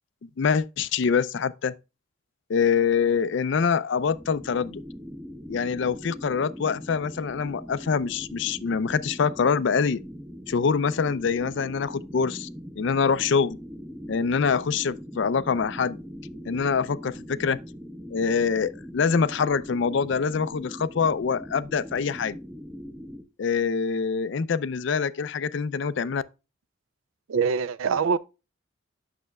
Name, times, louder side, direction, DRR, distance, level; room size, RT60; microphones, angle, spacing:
voice 1, 0.2-1.7 2.5-4.8 5.5-10.0 10.5-12.5 12.8-13.6 14.1-16.0 16.5-17.6 18.1-22.4 23.4-26.2, left 6 dB, 60° left, 0.4 m, -25 dB
sound 1, 3.9-23.2, equal, 5° right, 0.5 m, -41 dB
voice 2, 27.3-28.2, right 5 dB, 75° right, 0.4 m, -24 dB
8.6 x 6.5 x 2.2 m
head